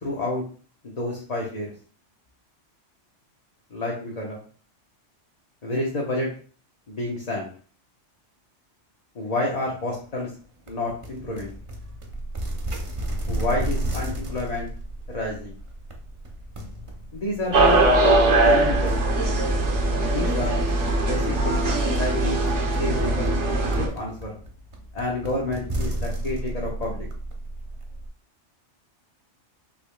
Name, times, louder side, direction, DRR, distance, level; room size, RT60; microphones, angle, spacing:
voice 1, 0.0-0.4 0.8-1.7 3.7-4.4 5.6-6.3 6.9-7.5 9.1-10.3 10.7-11.5 13.3-14.7 15.1-15.5 17.1-17.8 18.4-19.1 20.0-20.6 20.9-22.4 22.8-23.3 23.8-24.3 24.9-27.1, left 2 dB, 35° left, -3 dB, 1.0 m, -29 dB
sound 1, 10.7-28.1, right 1 dB, 35° right, 0.6 m, -34 dB
sound 2, 17.5-23.9, right 2 dB, 75° right, 1.2 m, -21 dB
5.7 x 4.1 x 2.2 m, 0.43 s
omnidirectional pair, 1.2 m